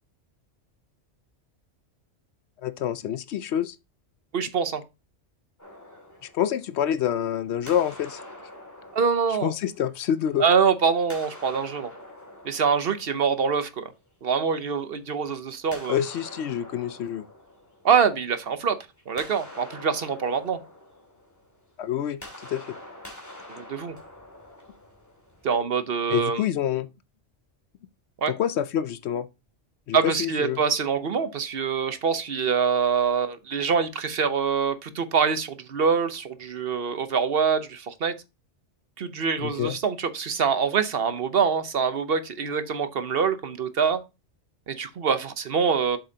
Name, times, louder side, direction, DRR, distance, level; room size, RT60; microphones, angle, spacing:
voice 1, 2.6-3.8 6.3-8.2 9.4-10.4 15.9-17.3 21.8-22.2 22.5-22.7 26.1-26.9 28.3-29.3 29.9-30.6 39.4-39.8, left 10 dB, 70° left, 0.8 m, -27 dB
voice 2, 4.3-4.8 8.9-9.5 10.4-11.9 12.4-13.9 14.2-16.0 17.8-18.8 19.1-20.6 23.6-23.9 25.4-26.4 28.2-28.3 29.9-38.1 39.0-44.0 44.7-46.0, right 6 dB, 55° right, 0.9 m, -25 dB
sound 1, 5.6-7.2 7.7-10.4 11.0-13.9 15.7-18.5 18.8-25.5, left 1 dB, 15° left, 2.3 m, -46 dB
7.7 x 6.7 x 2.8 m
omnidirectional pair, 1.2 m